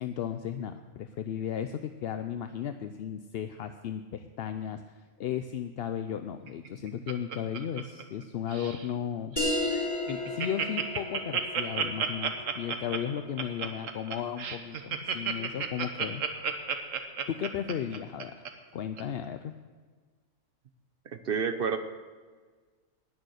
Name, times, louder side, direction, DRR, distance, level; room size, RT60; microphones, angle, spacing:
voice 1, 0.0-9.4 10.1-16.2 17.3-18.4 18.7-19.5, left 9 dB, 60° left, 9 dB, 0.7 m, -35 dB
Laughter, 6.5-8.2 8.5-8.9 9.3-9.4 9.7-9.8 10.1-18.5 19.0-19.1, right 7 dB, 80° right, 1.4 m, -32 dB
sound 1, 9.4-14.4, left 1 dB, 35° left, 4.5 m, -35 dB
voice 2, 21.1-21.8, right 6 dB, 50° right, 9 dB, 0.9 m, -29 dB
19.5 x 6.7 x 6.3 m, 1.5 s
omnidirectional pair, 1.3 m